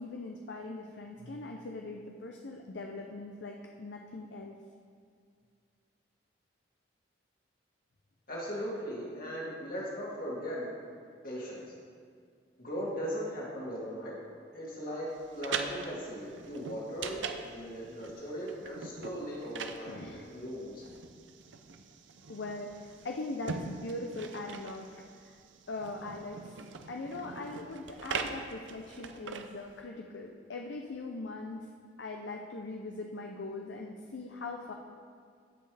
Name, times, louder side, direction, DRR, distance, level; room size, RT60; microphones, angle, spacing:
voice 1, 0.0-4.6 19.9-20.2 22.3-24.9 25.2-25.4 25.7-26.6 26.9-31.7 32.0-34.7, left 2 dB, 70° left, 2 dB, 0.6 m, -41 dB
voice 2, 8.3-10.7 11.2-11.7 12.6-14.1 14.5-15.1 15.3-20.0 20.3-20.8, equal, 50° left, -5 dB, 2.5 m, -38 dB
sound 1, 15.2-29.8, right 5 dB, 75° right, 0.6 m, -42 dB
15.5 x 5.6 x 3.4 m, 2.2 s
head